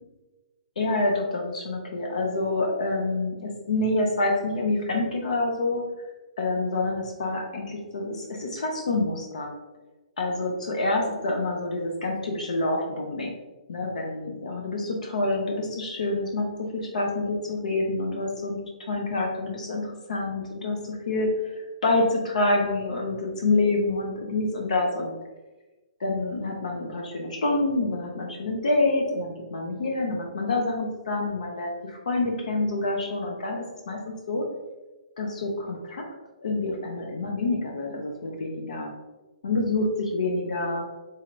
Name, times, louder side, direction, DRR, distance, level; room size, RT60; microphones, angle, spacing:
voice 1, 0.8-5.8 6.4-9.5 10.2-13.3 13.7-16.5 16.7-18.6 18.9-19.8 20.1-21.5 21.8-25.1 26.0-34.0 34.3-34.4 35.2-36.0 36.4-38.9 39.4-40.9, left 2 dB, 75° left, 1 dB, 0.7 m, -27 dB
4.1 x 3.2 x 2.5 m, 1.1 s
hypercardioid pair, 170°, 4 cm